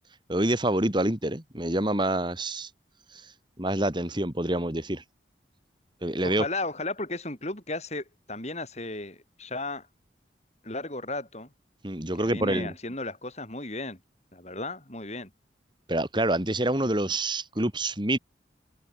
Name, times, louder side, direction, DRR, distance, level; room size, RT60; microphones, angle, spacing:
voice 1, 0.3-2.7 3.1-3.3 3.6-5.0 6.0-6.4 11.8-12.7 15.9-18.2, right 1 dB, 25° right, 3.1 m, -27 dB
voice 2, 6.2-9.9 10.6-11.5 12.2-14.0 14.3-15.3, left 2 dB, 35° left, 6.5 m, -35 dB
head